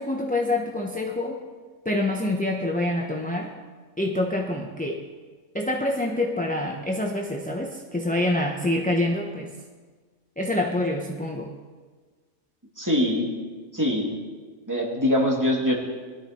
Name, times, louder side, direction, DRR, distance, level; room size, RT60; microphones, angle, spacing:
voice 1, 0.0-1.4 1.8-3.5 4.0-5.0 5.5-9.5 10.4-11.5, left 1 dB, 5° left, 1 dB, 0.7 m, -26 dB
voice 2, 12.8-13.3 13.7-14.1 14.7-15.7, left 1 dB, 15° right, -2 dB, 2.4 m, -23 dB
20.0 x 12.5 x 4.4 m, 1.5 s
omnidirectional pair, 1.4 m